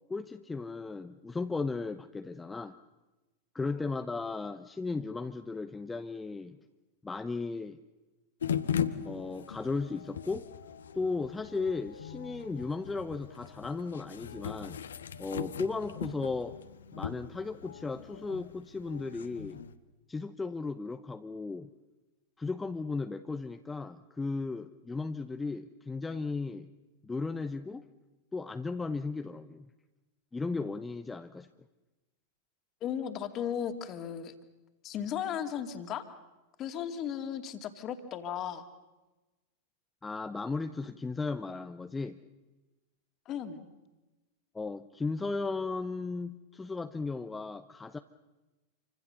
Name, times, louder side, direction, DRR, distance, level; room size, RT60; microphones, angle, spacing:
voice 1, 0.0-2.8 3.5-6.6 7.0-7.8 9.0-10.5 10.9-14.8 15.2-16.6 16.9-19.6 20.1-21.7 22.4-26.7 27.0-27.8 28.3-29.7 30.3-31.5 40.0-42.2 44.5-48.0, left 3 dB, 10° left, 8 dB, 0.9 m, -35 dB
sound 1, 8.4-19.7, left 8 dB, 65° left, 1.4 m, -39 dB
voice 2, 32.8-34.3 34.8-36.1 36.6-38.7 43.3-43.7, left 9 dB, 35° left, 8 dB, 2.6 m, -36 dB
28.5 x 25.0 x 6.9 m, 1.1 s
figure-of-eight pair, 90°, 0 cm